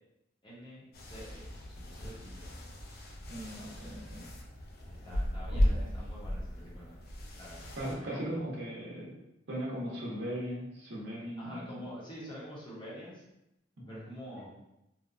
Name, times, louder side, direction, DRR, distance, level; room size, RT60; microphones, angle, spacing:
voice 1, 0.4-1.5 1.7-2.5 4.9-7.0 7.4-8.4 11.4-13.2 13.9-14.5, equal, 25° left, -6 dB, 0.8 m, -47 dB
sound 1, 0.9-7.9, equal, 55° left, 0.4 m, -35 dB
voice 2, 3.3-4.3 5.5-5.9 7.8-9.1 9.5-11.8 13.8-14.0, equal, 65° right, -6 dB, 0.6 m, -38 dB
2.7 x 2.1 x 2.4 m, 0.88 s
head